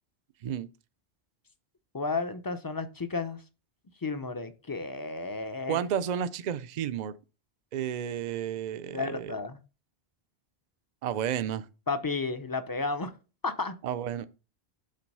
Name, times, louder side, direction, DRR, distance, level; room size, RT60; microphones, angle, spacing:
voice 1, 1.9-3.4 4.0-5.8 8.9-9.6 11.9-13.1 13.4-13.8, left 3 dB, 25° left, 0.5 m, -32 dB
voice 2, 5.7-7.1 7.7-9.4 11.0-11.6 13.8-14.3, right 9 dB, 55° right, 0.6 m, -31 dB
7.6 x 3.9 x 5.4 m
omnidirectional pair, 1.1 m